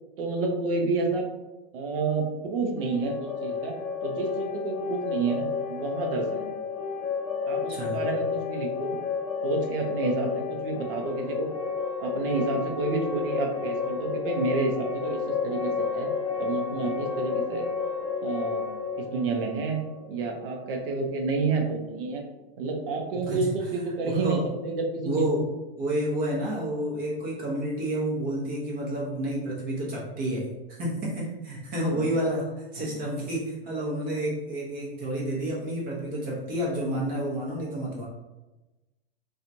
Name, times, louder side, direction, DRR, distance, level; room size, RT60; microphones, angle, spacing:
voice 1, 0.2-1.3 1.7-3.8 4.0-6.5 7.5-9.0 9.4-11.5 12.0-16.1 16.4-17.7 18.2-18.6 19.0-19.8 20.1-22.2 22.6-25.3 31.9-32.1 32.9-33.0, right 3 dB, 60° right, 2 dB, 0.7 m, -29 dB
sound 1, 2.8-20.5, left 5 dB, 15° left, 1.2 m, -31 dB
voice 2, 24.0-24.4 25.0-25.4 25.8-38.1, right 1 dB, 30° right, -5 dB, 0.9 m, -30 dB
2.8 x 2.4 x 2.6 m, 1.1 s
hypercardioid pair, 135°, 31 cm